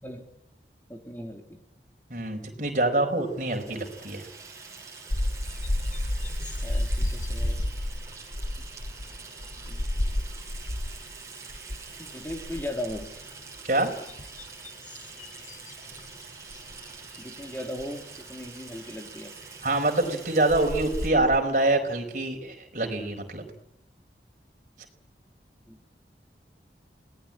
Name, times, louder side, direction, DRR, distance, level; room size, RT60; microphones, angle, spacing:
voice 1, 0.9-1.6 6.6-7.8 9.7-9.9 12.0-13.1 17.2-19.3 25.7-25.8, left 1 dB, 10° left, 4 dB, 3.2 m, -38 dB
voice 2, 2.1-4.2 13.6-13.9 19.6-23.4, right 2 dB, 45° right, 3 dB, 4.7 m, -25 dB
Water tap faucet / Sink (filling or washing), 3.2-21.1, right 4 dB, 20° right, 6.4 m, -45 dB
sound 1, 5.1-11.2 11.5-11.9 12.2-13.2 13.8-16.1 16.5-16.7 17.8-17.9 20.0-20.1 20.5-21.4, left 1 dB, 45° left, 1.2 m, -31 dB
28.0 x 19.0 x 8.8 m, 0.78 s
head